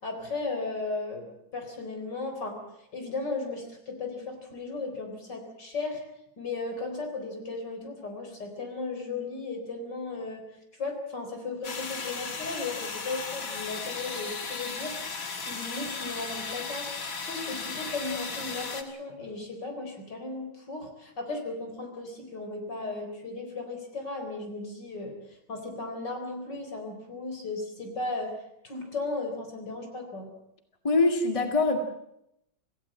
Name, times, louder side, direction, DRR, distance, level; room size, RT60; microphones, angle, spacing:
voice 1, 0.0-2.6 2.9-6.0 6.4-10.4 10.7-15.0 15.4-16.9 17.2-30.3, left 3 dB, 65° left, 4 dB, 4.8 m, -36 dB
sound 1, 11.6-18.8, left 4 dB, 45° left, 2.1 m, -36 dB
voice 2, 30.8-31.8, left 3 dB, 15° left, 4 dB, 2.0 m, -23 dB
26.5 x 16.0 x 7.7 m, 0.80 s
omnidirectional pair, 2.1 m